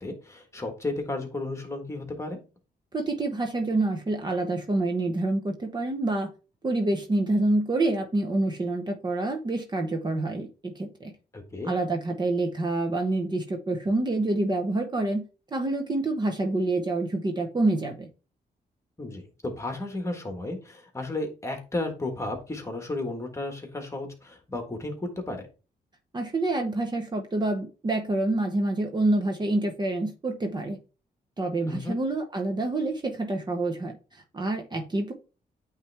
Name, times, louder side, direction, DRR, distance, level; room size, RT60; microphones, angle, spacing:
voice 1, 0.0-2.4 11.3-11.7 19.0-25.5 31.6-32.0, left 2 dB, 20° left, 1.5 m, -33 dB
voice 2, 2.9-6.3 6.6-11.1 11.6-15.2 15.5-18.1 26.1-30.8 31.4-35.1, right 2 dB, 25° right, 0.8 m, -27 dB
8.8 x 3.3 x 3.4 m
wide cardioid pair, 130°, 16 cm